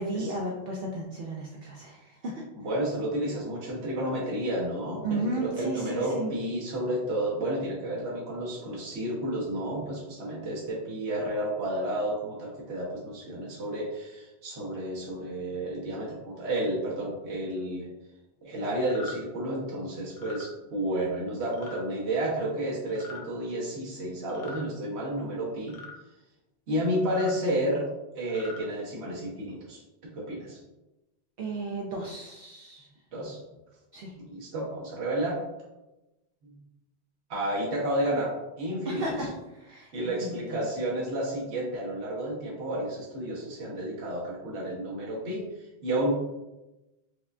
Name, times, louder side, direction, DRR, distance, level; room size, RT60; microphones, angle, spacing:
voice 1, 0.0-2.4 5.0-6.3 31.4-32.9 33.9-34.1 38.9-40.6, right 2 dB, 65° right, -2 dB, 0.7 m, -34 dB
voice 2, 2.6-17.9 18.4-25.7 26.7-27.8 28.1-29.8 30.1-30.6 33.1-33.4 34.2-35.4 36.4-36.6 37.3-39.0 39.9-46.1, right 1 dB, 80° right, -5 dB, 1.1 m, -31 dB
sound 1, 18.8-19.2 20.1-20.5 21.5-21.8 22.9-23.2 24.3-24.7 25.7-26.0 27.0-27.3 28.2-28.6, left 3 dB, 55° left, 0.7 m, -43 dB
4.7 x 2.3 x 2.4 m, 1.0 s
omnidirectional pair, 1.1 m